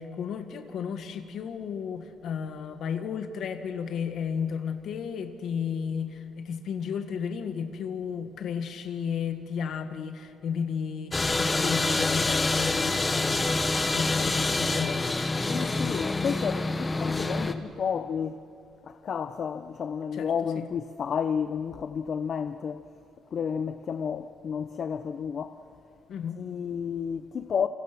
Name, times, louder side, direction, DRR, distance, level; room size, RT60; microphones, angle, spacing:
voice 1, 0.0-13.5 13.9-16.0 20.1-20.7 26.1-26.4, left 7 dB, 70° left, 1.8 m, -34 dB
sound 1, 11.1-17.5, left 2 dB, 20° left, 1.4 m, -26 dB
voice 2, 15.4-18.4 18.8-22.8 23.3-25.6 26.4-27.7, left 7 dB, 55° left, 0.8 m, -31 dB
29.0 x 26.0 x 6.2 m
cardioid pair, 90°, 0 cm